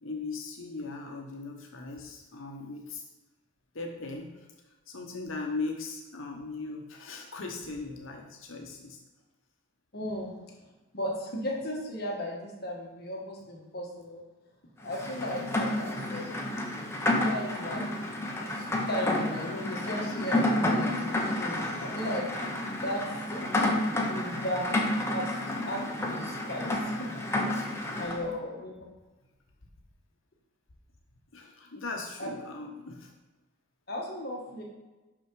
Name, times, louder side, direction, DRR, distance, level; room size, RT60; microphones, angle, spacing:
voice 1, 0.0-3.1 3.7-4.5 4.9-9.0 31.3-33.1, left 3 dB, 70° left, 1 dB, 0.9 m, -38 dB
voice 2, 9.9-10.3 10.9-14.2 14.8-16.3 17.1-18.1 18.4-22.3 22.8-23.0 23.3-25.8 26.1-27.1 28.0-28.7 32.2-32.3 33.9-34.6, left 1 dB, 50° left, -2 dB, 1.4 m, -36 dB
Rain, 14.9-28.2, left 1 dB, 10° left, 0.8 m, -30 dB
6.1 x 5.8 x 4.6 m, 1.1 s
head